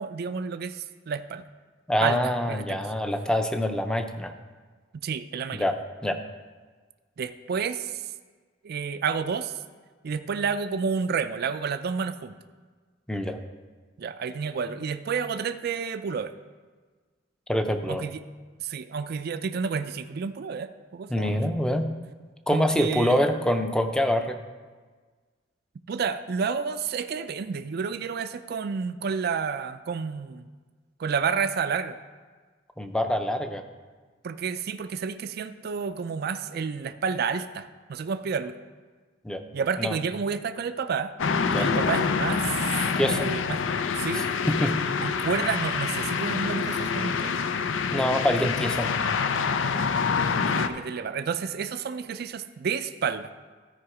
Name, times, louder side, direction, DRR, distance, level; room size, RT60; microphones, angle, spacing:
voice 1, 0.0-1.4 2.0-2.9 5.0-5.7 7.2-8.1 8.6-9.6 10.0-12.3 14.0-16.3 17.9-18.2 18.6-21.3 22.5-23.2 25.9-30.5 31.0-32.0 34.2-38.6 39.5-41.1 41.5-42.8 43.1-43.6 44.0-44.3 45.0-47.3 50.3-53.3, right 6 dB, 55° right, 10 dB, 0.4 m, -30 dB
voice 2, 1.9-4.3 5.5-5.7 6.0-6.2 13.1-13.4 17.5-18.1 21.1-21.9 22.5-24.4 32.8-33.6 39.2-39.4 39.8-40.0 41.5-41.7 43.0-43.3 44.1-44.7 47.9-49.0, equal, 5° left, 7 dB, 0.6 m, -25 dB
sound 1, 41.2-50.7, left 5 dB, 85° left, 0.5 m, -26 dB
13.0 x 5.0 x 4.8 m, 1.4 s
head